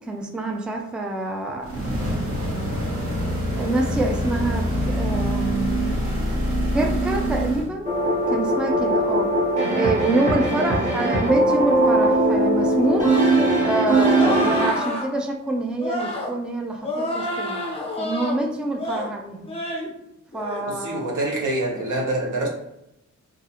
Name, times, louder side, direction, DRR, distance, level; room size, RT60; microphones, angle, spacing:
voice 1, 0.1-1.7 3.6-6.1 6.7-7.9 8.3-9.3 9.7-13.1 13.6-17.6 18.0-19.5 20.3-21.1, right 2 dB, 5° right, 2 dB, 0.3 m, -26 dB
sound 1, 1.6-7.7, equal, 50° right, 1.1 m, -25 dB
sound 2, 7.8-14.7, right 1 dB, 25° right, 1.0 m, -20 dB
sound 3, 14.1-15.1 15.8-16.3 16.8-18.4 18.8-19.1 19.5-19.9 20.3-20.6, left 1 dB, 20° left, 0.7 m, -28 dB
voice 2, 20.7-22.5, right 1 dB, 85° right, -2 dB, 0.8 m, -25 dB
2.4 x 2.3 x 2.8 m, 0.84 s
wide cardioid pair, 95°, 30 cm